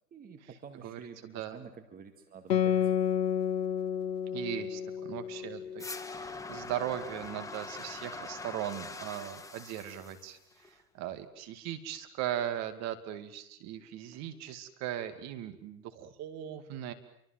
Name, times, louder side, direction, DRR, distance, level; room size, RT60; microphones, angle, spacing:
voice 1, 0.1-3.1 14.1-14.2, right 6 dB, 20° right, 7 dB, 2.0 m, -50 dB
voice 2, 0.8-1.6 4.3-10.4 10.7-16.9, right 11 dB, 35° right, 10 dB, 2.4 m, -38 dB
Guitar, 2.5-7.4, left 9 dB, 80° left, 1.3 m, -32 dB
sound 1, 5.8-10.8, left 3 dB, 5° left, 1.4 m, -43 dB
29.0 x 24.5 x 7.7 m, 0.73 s
hypercardioid pair, 130°, 48 cm